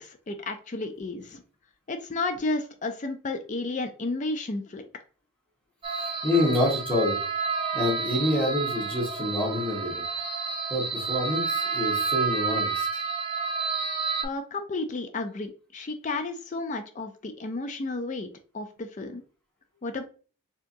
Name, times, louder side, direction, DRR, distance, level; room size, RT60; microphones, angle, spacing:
voice 1, 0.0-1.4 1.9-4.9 14.2-18.3 18.5-19.2 19.8-20.1, left 2 dB, 35° left, 7 dB, 0.4 m, -32 dB
sound 1, 5.8-14.2, right 5 dB, 25° right, 0.5 m, -30 dB
voice 2, 6.0-7.2 7.7-10.0 10.7-13.0, left 1 dB, 5° left, -4 dB, 1.4 m, -27 dB
4.4 x 2.9 x 2.6 m, 0.39 s
head